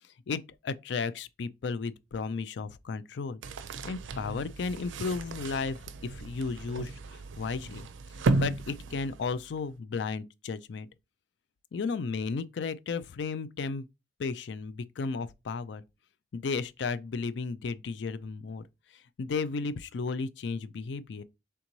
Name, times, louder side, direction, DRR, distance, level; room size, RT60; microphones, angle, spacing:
voice 1, 0.3-3.4 3.8-7.9 8.1-10.9 11.7-13.9 14.2-15.8 16.3-18.6 18.9-21.2, left 4 dB, 65° left, 0.4 m, -34 dB
sound 1, 3.4-9.6, right 2 dB, 80° right, 0.4 m, -34 dB
3.4 x 3.0 x 3.9 m
head